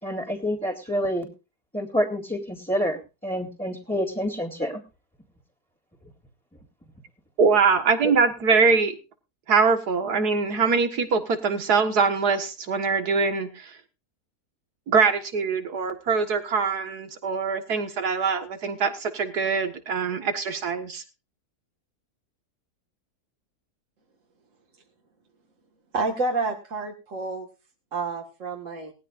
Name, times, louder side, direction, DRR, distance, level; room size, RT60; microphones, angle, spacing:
voice 1, 0.0-1.3 1.7-4.8 8.0-8.1, equal, 5° left, -5 dB, 2.3 m, -28 dB
voice 2, 7.4-9.0 9.5-13.7 14.9-21.0, right 5 dB, 75° right, 7 dB, 2.1 m, -23 dB
voice 3, 25.9-27.5 27.9-28.9, right 3 dB, 55° right, 1 dB, 2.2 m, -29 dB
19.0 x 14.0 x 2.5 m, 0.30 s
omnidirectional pair, 1.7 m